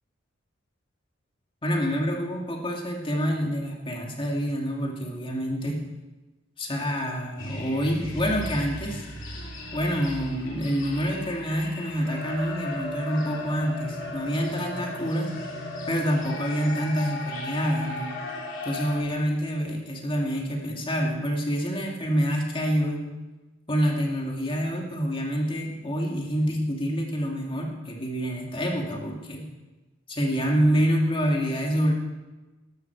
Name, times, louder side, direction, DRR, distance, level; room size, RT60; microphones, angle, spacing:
voice 1, 1.6-5.8 6.6-9.1 9.7-15.3 15.9-18.1 18.6-23.1 23.7-29.5 30.1-31.9, equal, 30° left, 0 dB, 2.2 m, -27 dB
sound 1, 7.4-19.0, left 1 dB, 85° left, 3.0 m, -36 dB
13.5 x 12.0 x 4.6 m, 1.1 s
head